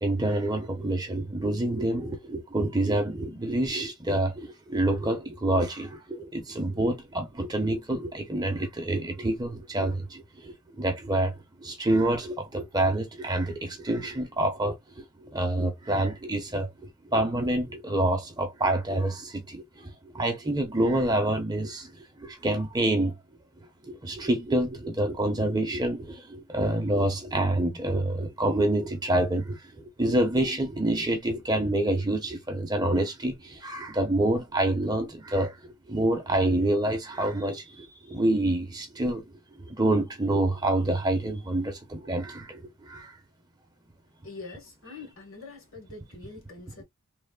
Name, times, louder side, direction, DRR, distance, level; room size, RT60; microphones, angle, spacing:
voice 1, 0.0-23.2 23.8-39.2 39.6-43.1, right 1 dB, 20° right, 0.6 m, -27 dB
voice 2, 44.2-46.8, left 3 dB, 65° left, 1.2 m, -44 dB
3.2 x 2.0 x 2.2 m
head